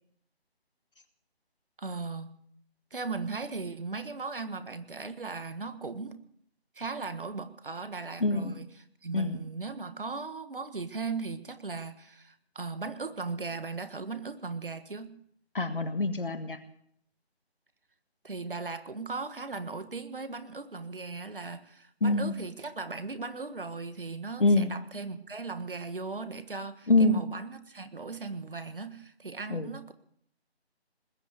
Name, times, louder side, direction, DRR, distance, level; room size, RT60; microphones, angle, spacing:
voice 1, 1.8-2.3 2.9-6.2 6.7-8.7 9.0-15.1 18.2-29.9, right 4 dB, 55° right, 11 dB, 1.5 m, -38 dB
voice 2, 8.2-8.5 9.1-9.4 15.5-16.6 22.0-22.3 24.4-24.7 26.9-27.2 29.5-29.7, left 2 dB, 55° left, 9 dB, 1.6 m, -25 dB
20.5 x 8.8 x 8.2 m, 0.66 s
figure-of-eight pair, 155°, 32 cm